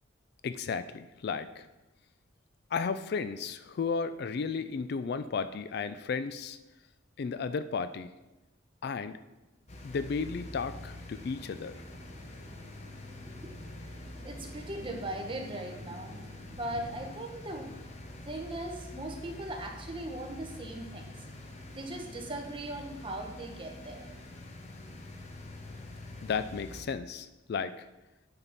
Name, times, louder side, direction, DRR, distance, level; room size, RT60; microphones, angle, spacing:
voice 1, 0.4-1.6 2.7-6.6 7.2-8.1 8.8-9.1 9.8-11.8 26.2-27.8, left 5 dB, 55° left, 12 dB, 0.3 m, -34 dB
sound 1, 9.7-26.8, left 1 dB, 35° left, 0.8 m, -46 dB
sound 2, 11.4-17.0, right 2 dB, 55° right, 0.7 m, -52 dB
voice 2, 14.2-16.2 16.6-17.8 18.2-21.2 21.7-24.1, right 1 dB, 25° right, 2 dB, 1.0 m, -39 dB
8.9 x 6.0 x 4.0 m, 1.0 s
head